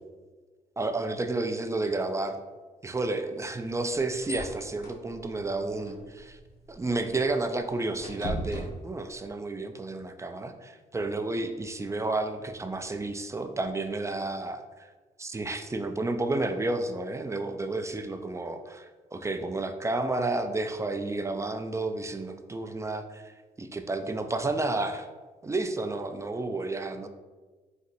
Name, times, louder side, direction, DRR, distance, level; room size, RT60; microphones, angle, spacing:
voice 1, 0.8-2.4 2.8-6.4 6.7-14.9 15.2-18.9 19.1-25.1 25.4-27.1, right 2 dB, 20° right, 7 dB, 0.4 m, -31 dB
sound 1, 3.6-9.3, equal, 80° left, 1.2 m, -41 dB
4.1 x 2.5 x 4.1 m, 1.3 s
cardioid pair, 80°, 16 cm